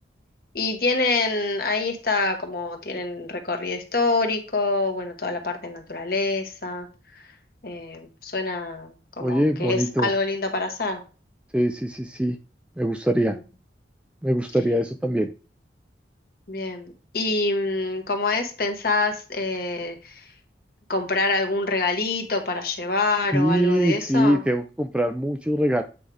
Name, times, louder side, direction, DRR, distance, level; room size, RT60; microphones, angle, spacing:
voice 1, 0.5-6.9 7.6-11.0 16.5-20.2 20.9-24.4, left 3 dB, 55° left, 4 dB, 1.4 m, -26 dB
voice 2, 9.2-10.1 11.5-12.4 12.8-13.4 14.2-15.3 23.3-25.8, equal, 5° right, 6 dB, 0.4 m, -22 dB
8.5 x 5.0 x 3.4 m, 0.34 s
head